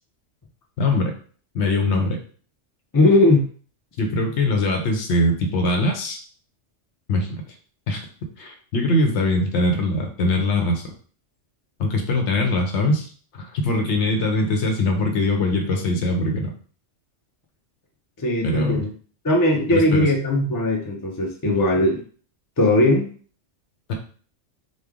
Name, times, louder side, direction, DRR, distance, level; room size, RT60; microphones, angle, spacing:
voice 1, 0.8-1.2 1.5-2.2 4.0-6.2 7.1-7.4 7.9-8.1 8.4-10.8 11.8-16.5 18.4-18.9 19.7-20.1 23.9-24.0, left 2 dB, 70° left, 2 dB, 1.0 m, -22 dB
voice 2, 2.9-3.5 18.2-18.9 19.2-22.0 22.6-23.1, left 1 dB, 30° left, 0 dB, 0.4 m, -19 dB
3.2 x 2.2 x 3.5 m, 0.43 s
omnidirectional pair, 1.3 m